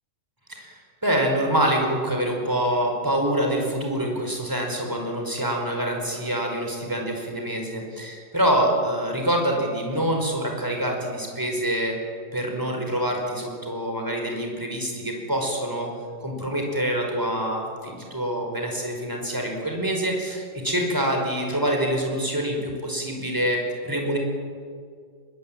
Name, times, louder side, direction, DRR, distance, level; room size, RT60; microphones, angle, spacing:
voice 1, 0.5-12.0 12.3-15.9 16.2-24.2, right 1 dB, 10° right, 1 dB, 5.1 m, -26 dB
22.5 x 21.0 x 9.0 m, 2.1 s
omnidirectional pair, 1.9 m